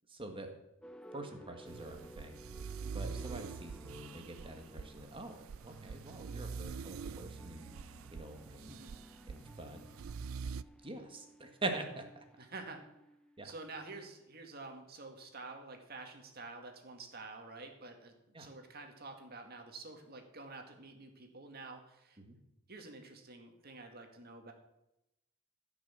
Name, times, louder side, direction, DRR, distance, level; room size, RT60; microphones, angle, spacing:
voice 1, 0.1-0.5 1.1-2.6 2.9-8.8 9.3-10.1 10.5-12.3 13.4-13.5 18.3-18.5 22.2-22.4, right 2 dB, 25° right, 5 dB, 1.7 m, -45 dB
sound 1, 0.8-14.2, right 1 dB, 5° left, 0.5 m, -56 dB
sound 2, 1.7-10.6, right 5 dB, 85° right, 0.4 m, -45 dB
voice 2, 12.4-12.8 13.4-22.2 22.7-24.5, right 3 dB, 50° right, 4 dB, 2.1 m, -49 dB
15.5 x 6.2 x 7.4 m, 0.89 s
head